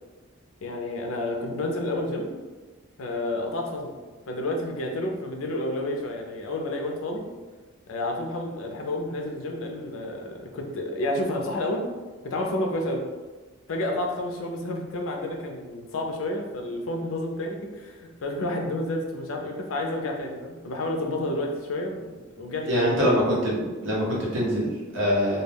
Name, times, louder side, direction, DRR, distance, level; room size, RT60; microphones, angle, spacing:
voice 1, 0.6-2.3 3.0-3.9 4.3-7.2 7.9-11.9 12.2-13.0 13.7-23.1, left 1 dB, 80° left, 1 dB, 0.5 m, -30 dB
voice 2, 22.6-25.4, equal, 65° right, -5 dB, 0.8 m, -24 dB
2.3 x 2.2 x 3.3 m, 1.3 s
head